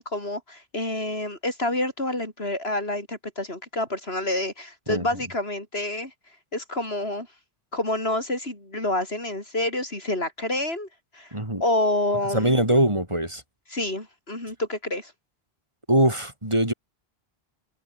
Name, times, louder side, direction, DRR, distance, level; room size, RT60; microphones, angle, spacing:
voice 1, 0.0-6.1 6.5-7.3 7.7-10.9 11.1-12.6 13.7-15.1, left 1 dB, 80° left, 6.2 m, -28 dB
voice 2, 11.3-11.6 12.3-13.4 15.9-16.7, right 1 dB, 30° right, 4.2 m, -22 dB
omnidirectional pair, 1.0 m